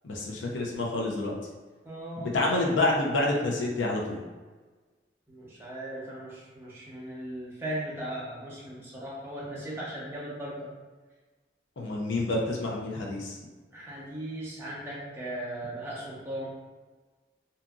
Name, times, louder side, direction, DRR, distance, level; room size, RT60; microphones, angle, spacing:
voice 1, 0.0-1.3 2.2-4.2 11.8-13.4, left 2 dB, 80° left, -2 dB, 0.5 m, -28 dB
voice 2, 1.8-2.3 5.3-10.7 13.7-16.5, right 1 dB, 15° right, -6 dB, 0.7 m, -38 dB
2.7 x 2.5 x 2.3 m, 1.3 s
head